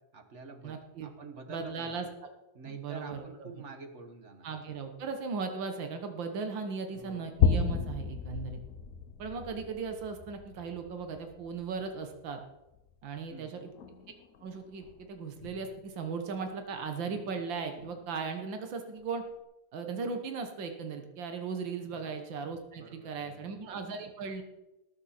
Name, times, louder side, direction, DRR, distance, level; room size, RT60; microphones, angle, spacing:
voice 1, 0.0-2.1 2.5-4.5 6.9-7.3 13.3-13.6 21.8-22.3 22.8-23.5, right 3 dB, 45° right, 6 dB, 1.3 m, -48 dB
voice 2, 0.6-1.1 1.5-2.1 2.6-3.5 4.4-8.6 9.2-12.4 13.0-13.7 14.4-19.3 19.7-24.4, right 5 dB, 85° right, 6 dB, 1.9 m, -37 dB
sound 1, 7.0-12.4 12.7-12.9 13.2-13.3 13.7-15.1 15.4-15.8 17.4-18.0 18.5-18.6, left 6 dB, 60° left, 1.0 m, -33 dB
19.0 x 7.1 x 4.3 m, 0.95 s
omnidirectional pair, 2.0 m